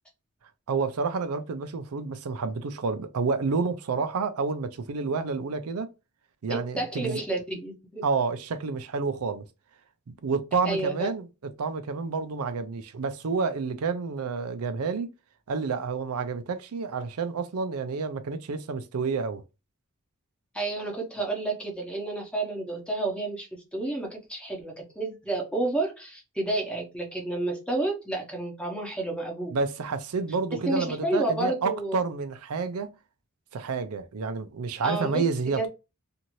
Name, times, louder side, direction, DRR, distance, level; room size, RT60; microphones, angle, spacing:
voice 1, 0.7-5.9 6.4-7.2 8.0-9.4 10.2-11.3 11.6-15.1 15.5-19.4 29.5-32.9 33.5-35.7, right 4 dB, 90° right, 0.5 m, -29 dB
voice 2, 6.5-8.0 10.6-11.1 20.5-29.5 30.5-32.1 34.8-35.2 35.6-35.7, right 2 dB, 5° left, 0.9 m, -30 dB
2.7 x 2.5 x 3.0 m
head